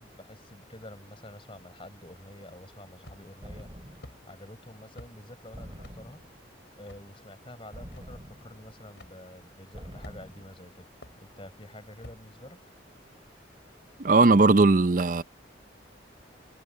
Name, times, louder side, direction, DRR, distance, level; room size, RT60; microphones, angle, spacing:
voice 1, 0.0-3.7 4.3-6.2 6.8-12.6, left 1 dB, 30° left, 6.3 m, -48 dB
sound 1, 3.0-3.4 4.0-4.2 5.0-5.2 5.8-6.0 6.9-7.0 7.9-8.0 9.0-9.1 10.0-10.4 11.0-11.2 12.0-12.2, left 1 dB, 75° left, 4.1 m, -48 dB
sound 2, 3.4-4.3 5.5-6.5 7.7-8.8 9.7-10.6, equal, 30° right, 3.1 m, -46 dB
voice 2, 14.0-15.2, right 3 dB, 45° right, 0.6 m, -19 dB
head